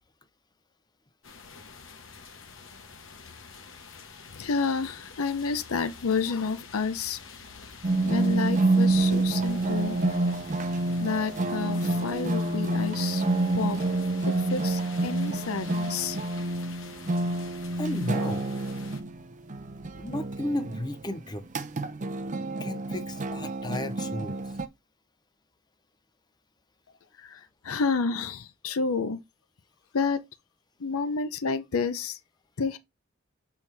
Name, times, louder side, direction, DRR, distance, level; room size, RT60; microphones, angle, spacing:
sound 1, 1.2-19.0, left 5 dB, 65° left, 1.2 m, -47 dB
voice 1, 4.3-7.2 8.0-10.0 11.0-13.2 13.5-13.8 14.2-16.2 27.2-29.2 29.9-30.2 30.8-32.2 32.6-32.8, left 4 dB, 90° left, 0.7 m, -30 dB
sound 2, 7.8-24.7, right 2 dB, 35° right, 0.5 m, -28 dB
voice 2, 17.8-18.5 20.0-21.5 22.6-24.4, left 1 dB, 20° left, 0.6 m, -33 dB
7.1 x 4.4 x 3.3 m
head